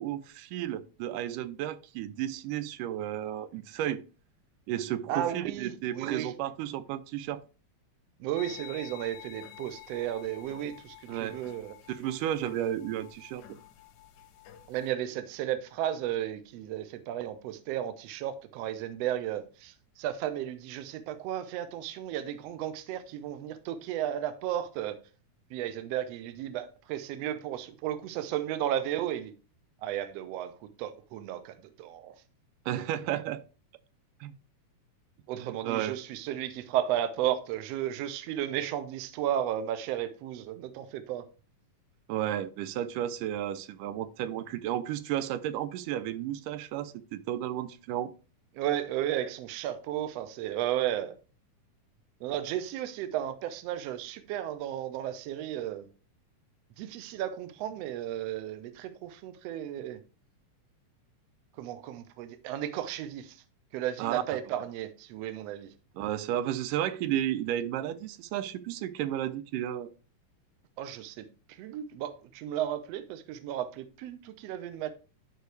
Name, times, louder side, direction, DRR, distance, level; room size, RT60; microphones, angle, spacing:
voice 1, 0.0-4.0 4.7-7.4 11.1-11.4 11.9-13.4 32.7-33.4 34.2-34.3 35.3-36.0 42.1-48.1 64.0-64.2 66.0-69.9, right 12 dB, 90° right, 2.2 m, -33 dB
voice 2, 5.1-6.3 8.2-11.7 14.7-25.0 25.5-29.3 29.8-32.1 35.3-41.2 48.5-51.1 52.2-55.9 56.8-60.0 61.6-63.4 63.7-65.7 70.8-74.9, right 11 dB, 70° right, 1.6 m, -34 dB
sound 1, 8.3-14.9, left 13 dB, 85° left, 2.4 m, -50 dB
11.5 x 4.7 x 3.3 m
omnidirectional pair, 3.7 m